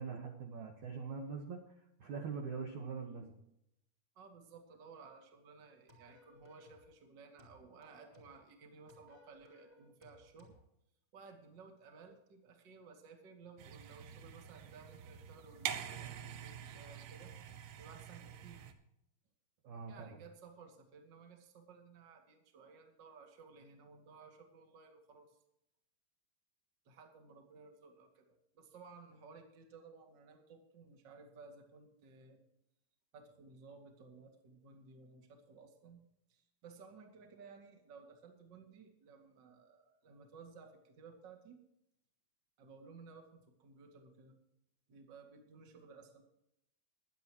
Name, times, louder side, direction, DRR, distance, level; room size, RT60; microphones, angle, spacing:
voice 1, 0.0-3.3 19.6-20.2, right 5 dB, 60° right, 2 dB, 2.1 m, -43 dB
voice 2, 4.1-10.5 11.1-17.3 17.8-18.7 19.9-25.4 26.8-32.4 33.1-36.0 36.3-41.6 42.6-44.4 44.9-46.2, right 4 dB, 40° right, 3 dB, 1.8 m, -57 dB
sound 1, 5.9-6.9 7.4-8.5 8.9-10.6, left 1 dB, 5° right, 3.4 m, -62 dB
sound 2, 13.6-18.7, right 9 dB, 90° right, 3.4 m, -46 dB
23.5 x 10.5 x 3.0 m, 0.80 s
omnidirectional pair, 5.1 m